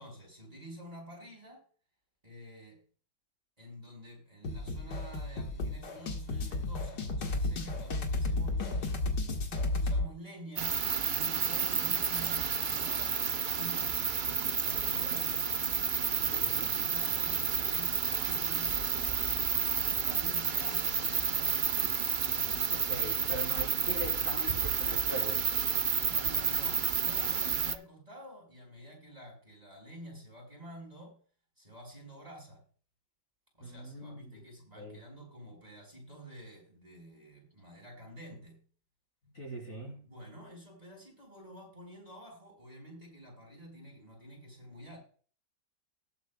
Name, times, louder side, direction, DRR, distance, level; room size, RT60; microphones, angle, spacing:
voice 1, 0.0-1.6 2.2-2.8 3.6-9.0 9.7-14.0 14.6-15.5 16.3-19.3 19.8-21.8 26.0-31.2 31.6-32.6 33.6-38.6 40.0-45.0, equal, 20° right, -1 dB, 4.7 m, -49 dB
sound 1, 4.4-10.1, left 2 dB, 75° left, 2.2 m, -33 dB
sound 2, 10.6-27.8, right 6 dB, 50° right, 0.6 m, -30 dB
voice 2, 16.3-16.7 22.7-25.4 33.6-34.4 34.7-35.0 39.3-40.0, equal, 45° left, -1 dB, 4.4 m, -42 dB
19.5 x 8.2 x 2.2 m, 0.41 s
omnidirectional pair, 1.9 m